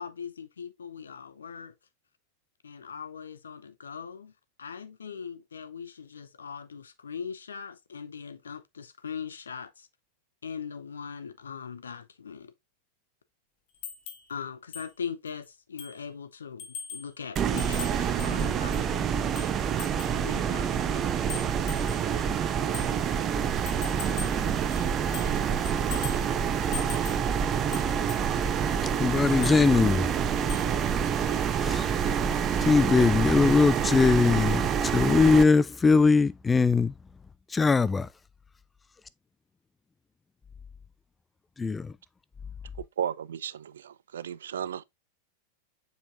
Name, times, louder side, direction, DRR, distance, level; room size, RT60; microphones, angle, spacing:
voice 1, 0.0-1.7 2.6-4.3 4.6-9.9 10.4-12.5 14.3-19.1 20.2-21.2, left 6 dB, 70° left, 0.7 m, -40 dB
sound 1, 13.8-14.3 14.7-14.9 15.3-15.4 15.8-16.1 16.6-17.1 17.6-18.9 19.4-20.2 20.9-22.1 22.7-22.9 23.7-24.4 24.7-25.4 25.7-26.3 26.7-27.3 27.7-28.3 29.3-29.6 30.5-30.8 31.0-31.2, left 6 dB, 45° left, 1.7 m, -41 dB
ac fan w switch-on compressor, 17.4-35.4, right 7 dB, 30° right, 0.8 m, -27 dB
voice 2, 29.0-30.1 31.6-31.9 32.6-36.9 37.5-38.1 41.6-41.9, left 4 dB, 15° left, 0.4 m, -21 dB
voice 3, 43.0-44.8, right 9 dB, 65° right, 0.4 m, -34 dB
7.1 x 5.4 x 2.6 m
figure-of-eight pair, 90°, 0 cm